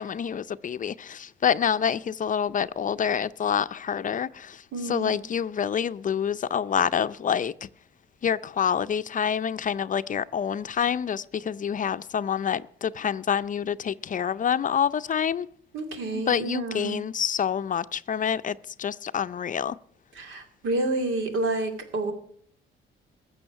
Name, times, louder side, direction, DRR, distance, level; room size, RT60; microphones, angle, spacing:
voice 1, 0.0-7.7 8.2-15.5 16.1-19.8, left 8 dB, 40° left, 0.5 m, -27 dB
voice 2, 4.7-5.2 15.7-17.0 20.2-22.1, right 2 dB, 80° right, 2.6 m, -29 dB
15.0 x 6.3 x 9.9 m
cardioid pair, 90°, 20 cm